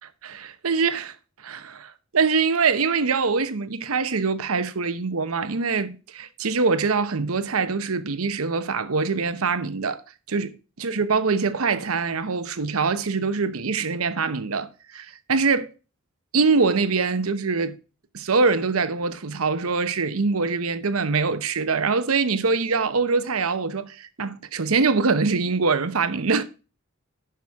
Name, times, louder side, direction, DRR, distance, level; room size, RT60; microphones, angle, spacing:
voice 1, 0.2-1.1 1.4-10.0 10.3-15.7 16.3-17.7 18.1-26.4, right 4 dB, 85° right, 0.8 m, -24 dB
10.5 x 6.2 x 3.5 m
head